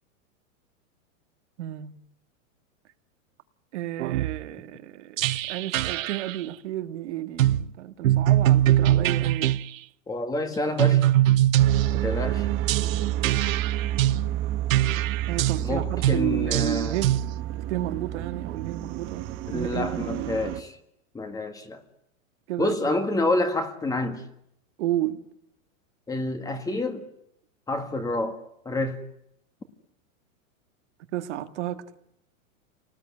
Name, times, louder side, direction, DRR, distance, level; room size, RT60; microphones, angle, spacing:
voice 1, 1.6-1.9 3.7-9.6 15.3-17.1 17.5-19.3 19.5-20.3 22.5-22.7 24.8-25.2 31.1-31.8, right 13 dB, 55° right, 1.8 m, -32 dB
sound 1, 4.0-4.4 5.2-6.4 7.4-7.6 8.0-9.6 10.8-12.1 12.7-14.2 14.7-15.6 16.0-16.2 16.5-17.2, right 13 dB, 70° right, 1.0 m, -22 dB
voice 2, 10.1-11.1 11.9-12.5 15.6-17.0 19.5-20.7 21.1-21.8 22.6-24.2 26.1-27.1 27.7-29.0, left 2 dB, 10° left, 1.9 m, -28 dB
sound 2, 11.6-20.6, right 13 dB, 30° right, 1.3 m, -29 dB
28.0 x 19.5 x 9.8 m
supercardioid pair, 155°, 41 cm